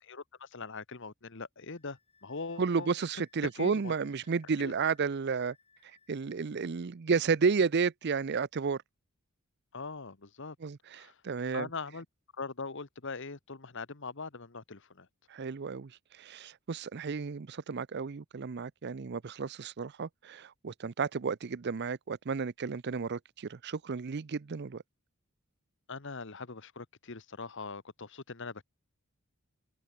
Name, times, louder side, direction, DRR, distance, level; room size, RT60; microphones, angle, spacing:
voice 1, 0.0-2.9 3.6-3.9 4.6-4.7 9.7-10.6 11.0-11.2 11.5-12.0 12.3-15.1 25.9-28.6, left 4 dB, 60° left, 1.3 m, -41 dB
Wind instrument woodwind instrument, 1.7-6.5, left 5 dB, 30° left, 5.7 m, -66 dB
voice 2, 2.6-5.6 5.8-8.8 10.6-11.7 15.3-24.8, right 5 dB, 50° right, 0.5 m, -32 dB
head